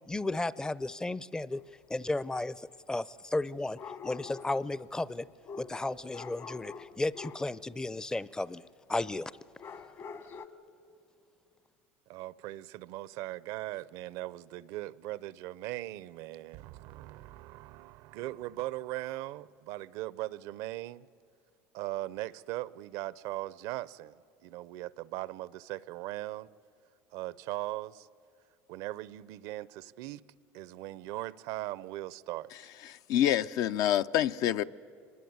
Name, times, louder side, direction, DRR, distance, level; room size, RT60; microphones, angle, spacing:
voice 1, 0.1-1.6 1.9-5.3 5.6-8.6 8.9-9.3, left 2 dB, 10° left, 0.5 m, -34 dB
sound 1, 1.5-1.6 3.7-4.7 5.4-7.5 9.6-10.5, left 5 dB, 45° left, 1.3 m, -45 dB
voice 2, 12.1-21.1 21.7-24.1 24.4-26.5 27.1-28.1 28.7-30.2 30.5-32.5, right 16 dB, 70° right, 0.6 m, -39 dB
voice 3, 32.9-34.6, left 11 dB, 60° left, 0.6 m, -27 dB
25.0 x 21.0 x 9.5 m
supercardioid pair, 105°, 7 cm